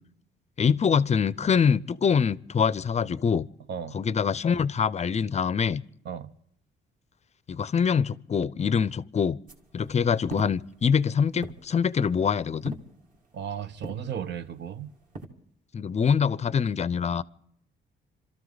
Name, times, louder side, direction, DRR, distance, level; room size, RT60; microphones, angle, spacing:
voice 1, 0.6-3.5 3.9-5.8 7.5-9.4 9.7-12.7 15.7-17.2, left 6 dB, 35° left, 0.5 m, -24 dB
sound 1, 9.5-15.3, right 2 dB, 40° right, 2.4 m, -44 dB
voice 2, 13.3-14.9, right 8 dB, 60° right, 0.9 m, -35 dB
27.0 x 13.0 x 4.0 m
cardioid pair, 90°, 20 cm